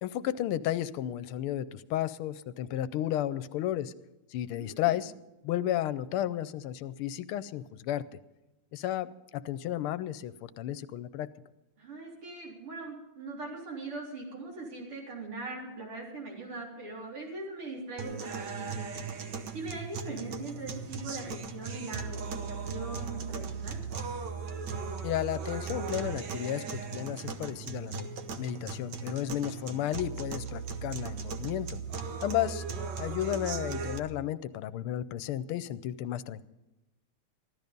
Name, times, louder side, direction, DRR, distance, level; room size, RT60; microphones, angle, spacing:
voice 1, 0.0-3.9 4.3-5.1 5.4-8.0 8.7-11.3 25.0-28.1 28.4-31.8 32.2-32.6 33.0-36.4, left 12 dB, 80° left, 16 dB, 1.5 m, -33 dB
voice 2, 4.6-5.0 11.8-18.9 19.5-23.8 32.3-32.5, right 3 dB, 85° right, -3 dB, 4.8 m, -41 dB
sound 1, 18.0-34.0, right 5 dB, 60° right, 1.6 m, -37 dB
15.5 x 13.0 x 5.3 m, 1.0 s
omnidirectional pair, 2.4 m